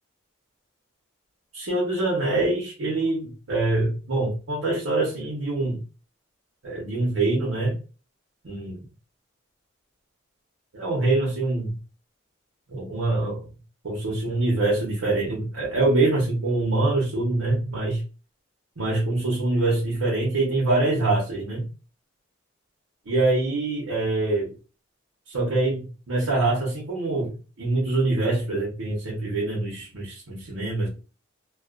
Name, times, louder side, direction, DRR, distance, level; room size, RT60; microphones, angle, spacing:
voice 1, 1.5-5.8 6.6-7.8 8.4-8.8 10.7-11.7 12.7-13.5 13.8-18.0 18.8-21.6 23.1-24.5 25.3-27.3 27.6-30.9, right 2 dB, 85° right, -4 dB, 0.9 m, -24 dB
2.3 x 2.3 x 2.4 m, 0.34 s
head